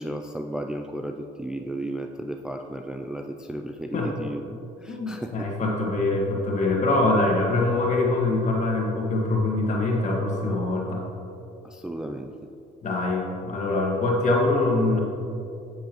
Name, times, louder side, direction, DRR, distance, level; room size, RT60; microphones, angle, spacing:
voice 1, 0.0-5.5 11.6-12.3, right 1 dB, 5° right, 4 dB, 0.3 m, -34 dB
voice 2, 4.9-11.0 12.8-15.0, left 2 dB, 45° left, -1 dB, 1.7 m, -24 dB
8.5 x 7.8 x 3.0 m, 2.6 s
cardioid pair, 110°, 17 cm